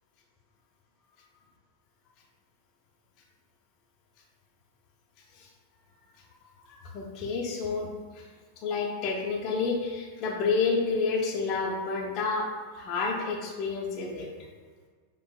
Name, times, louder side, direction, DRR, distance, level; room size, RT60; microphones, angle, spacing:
voice 1, 6.7-8.3 8.6-14.3, left 4 dB, 40° left, -1 dB, 0.6 m, -30 dB
7.0 x 2.4 x 2.4 m, 1.5 s
figure-of-eight pair, 90°, 0 cm